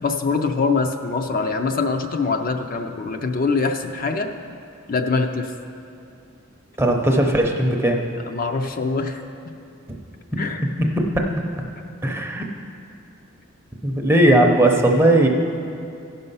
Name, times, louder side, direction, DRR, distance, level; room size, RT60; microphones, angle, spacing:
voice 1, 0.0-4.3 4.9-5.5 8.3-9.2 10.4-10.7, left 4 dB, 40° left, 5 dB, 0.4 m, -23 dB
voice 2, 6.8-8.0 10.8-11.2 12.0-12.4 13.8-15.3, right 1 dB, 10° right, 2 dB, 0.6 m, -17 dB
16.0 x 5.5 x 5.5 m, 2.6 s
head